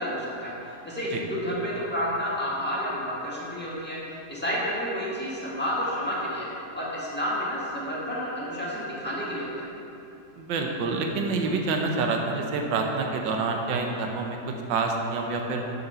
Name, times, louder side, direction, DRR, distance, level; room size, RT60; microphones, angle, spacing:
voice 1, 0.0-4.0 4.3-6.5 6.7-9.7, equal, 5° left, -7 dB, 1.5 m, -30 dB
voice 2, 10.4-14.4 14.7-15.6, right 3 dB, 80° right, 2 dB, 1.5 m, -27 dB
6.8 x 6.6 x 5.5 m, 2.7 s
omnidirectional pair, 2.0 m